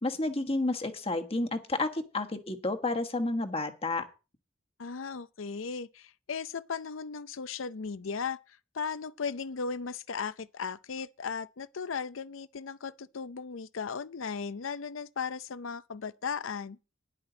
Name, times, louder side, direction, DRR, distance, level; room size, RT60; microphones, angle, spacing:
voice 1, 0.0-4.1, left 2 dB, 30° left, 1.3 m, -31 dB
voice 2, 4.8-16.8, left 5 dB, 80° left, 0.6 m, -36 dB
12.5 x 10.5 x 3.9 m
head